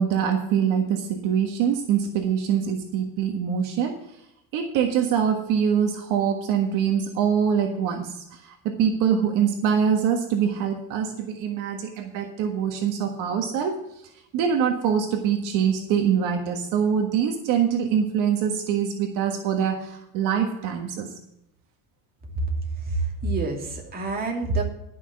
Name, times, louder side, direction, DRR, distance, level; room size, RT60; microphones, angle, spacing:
voice 1, 0.0-4.0 4.5-13.8 14.3-21.1, right 8 dB, 65° right, 4 dB, 1.6 m, -24 dB
voice 2, 22.8-24.6, right 3 dB, 25° right, 0 dB, 2.6 m, -27 dB
12.0 x 6.2 x 7.7 m, 0.85 s
cardioid pair, 145°, 34 cm